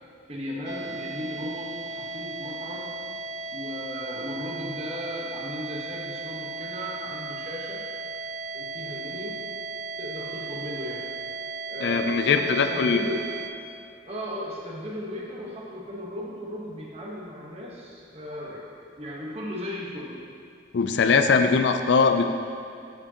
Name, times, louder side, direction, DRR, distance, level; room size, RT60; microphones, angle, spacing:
voice 1, 0.3-2.9 3.5-7.8 8.5-9.5 10.0-11.1 11.7-13.3 14.1-18.7 19.0-20.2, equal, 35° right, -3 dB, 1.1 m, -36 dB
sound 1, 0.6-13.5, right 3 dB, 65° right, 0.5 m, -36 dB
voice 2, 11.8-13.0 20.7-22.2, left 5 dB, 65° left, 7 dB, 0.4 m, -21 dB
14.0 x 5.0 x 2.9 m, 2.4 s
head